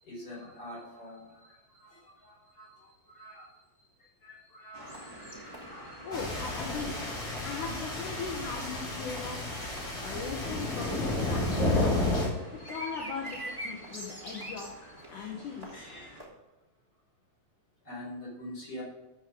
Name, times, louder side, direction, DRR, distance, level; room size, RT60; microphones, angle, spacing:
voice 1, 0.0-3.5 4.0-6.6 12.3-12.9 13.5-14.1 14.4-14.7 15.1-15.3 15.7-16.3 17.8-18.8, left 1 dB, 25° left, -3 dB, 4.6 m, -48 dB
sound 1, 4.7-16.3, right 1 dB, 10° left, 2.2 m, -45 dB
voice 2, 6.0-6.9 7.4-9.4 10.0-12.1 12.7-13.4 13.6-15.8, left 5 dB, 70° left, 0 dB, 2.6 m, -39 dB
sound 2, 6.1-12.3, left 2 dB, 45° left, 5.1 m, -31 dB
13.5 x 7.7 x 3.8 m, 1.1 s
omnidirectional pair, 4.0 m